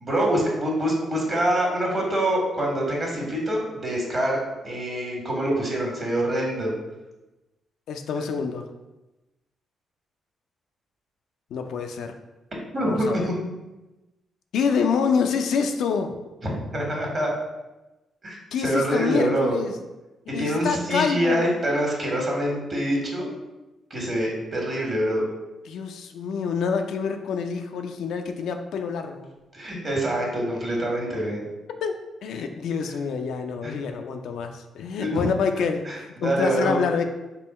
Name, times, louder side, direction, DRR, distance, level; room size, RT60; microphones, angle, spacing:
voice 1, 0.0-4.4 4.6-6.7 12.7-13.4 16.7-17.3 18.2-18.4 18.6-19.5 20.4-23.3 23.9-25.2 29.5-31.5 33.6-33.7 35.0-35.1 35.9-36.8, right 1 dB, 45° right, -1 dB, 1.4 m, -25 dB
voice 2, 7.9-8.7 11.5-12.1 12.8-13.3 14.5-16.1 18.5-19.8 20.3-21.5 25.7-29.3 31.8-37.0, left 6 dB, 75° left, 6 dB, 0.3 m, -27 dB
3.7 x 2.2 x 4.1 m, 1.0 s
hypercardioid pair, 50°, 0 cm